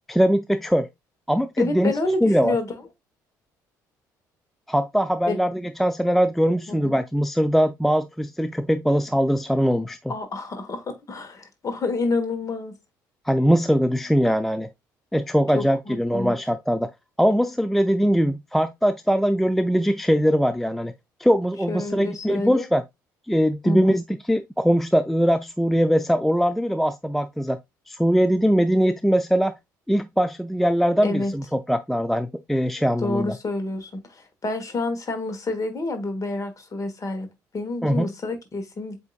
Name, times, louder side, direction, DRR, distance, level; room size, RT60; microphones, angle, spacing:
voice 1, 0.1-0.9 1.3-1.9 2.2-2.6 4.7-10.1 13.3-14.7 15.1-16.9 17.2-20.9 21.2-22.8 23.3-27.6 27.9-29.5 29.9-33.4 37.8-38.1, equal, ahead, 0.3 m, -21 dB
voice 2, 1.6-2.7 5.3-5.4 6.7-6.9 10.1-12.7 15.5-16.3 21.7-22.7 23.6-24.0 31.0-31.3 33.0-37.3 37.5-39.0, left 2 dB, 35° left, 1.4 m, -28 dB
7.8 x 2.7 x 2.4 m
figure-of-eight pair, 50°, 10 cm